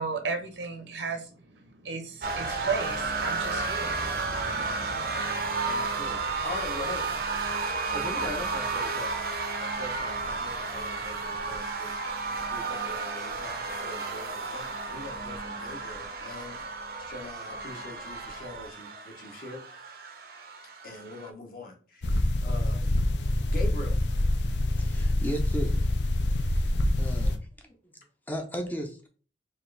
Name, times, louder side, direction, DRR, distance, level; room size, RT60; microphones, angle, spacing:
voice 1, 0.0-5.0, right 4 dB, 80° right, 0.9 m, -35 dB
sound 1, 2.2-21.3, right 4 dB, 50° right, 0.6 m, -32 dB
voice 2, 5.6-7.1 7.9-9.2 9.6-12.2 12.5-16.6 17.0-19.6 20.8-22.1 22.4-23.0 23.5-24.1, left 2 dB, 50° left, 0.9 m, -42 dB
sound 2, 22.0-27.4, left 1 dB, 70° left, 0.5 m, -26 dB
voice 3, 24.8-25.8 26.5-26.7 27.0-27.7 28.3-29.1, equal, 10° left, 0.5 m, -35 dB
4.3 x 2.4 x 3.2 m
head